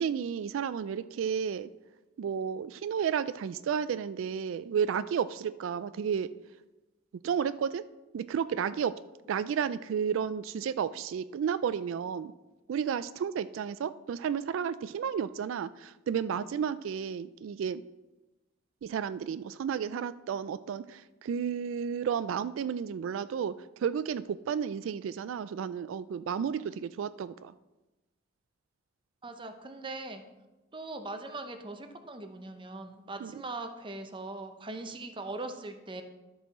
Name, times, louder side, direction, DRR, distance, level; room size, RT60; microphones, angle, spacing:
voice 1, 0.0-1.7 2.2-6.3 7.2-7.8 8.1-9.0 9.3-12.3 12.7-17.8 18.8-27.5 33.2-33.3, right 7 dB, 90° right, 15 dB, 0.3 m, -32 dB
voice 2, 29.2-30.2 30.7-36.0, right 2 dB, 25° right, 6 dB, 0.7 m, -40 dB
12.0 x 5.5 x 4.2 m, 1.1 s
head